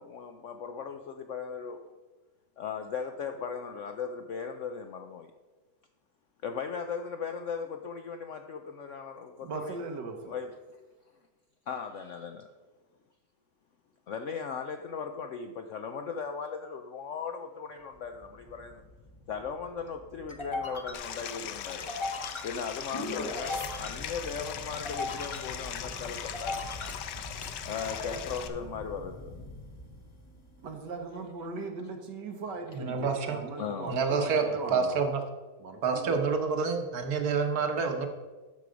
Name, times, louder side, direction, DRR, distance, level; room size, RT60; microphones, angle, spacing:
voice 1, 0.0-1.9 2.6-5.3 6.4-9.8 10.3-10.5 11.7-12.5 14.1-18.8 19.3-21.9 22.4-26.9 27.6-29.3 33.6-33.9, left 6 dB, 70° left, 6 dB, 0.7 m, -38 dB
voice 2, 9.4-10.4 30.6-35.0 35.6-36.2, right 4 dB, 85° right, 4 dB, 1.8 m, -39 dB
sound 1, 18.0-30.7, left 2 dB, 30° left, 0.6 m, -40 dB
Stream, 20.9-28.5, left 9 dB, 90° left, 1.3 m, -39 dB
voice 3, 32.7-33.4 33.9-35.2 35.8-38.1, right 5 dB, 65° right, 5 dB, 1.5 m, -28 dB
12.5 x 4.7 x 5.1 m, 1.3 s
omnidirectional pair, 1.8 m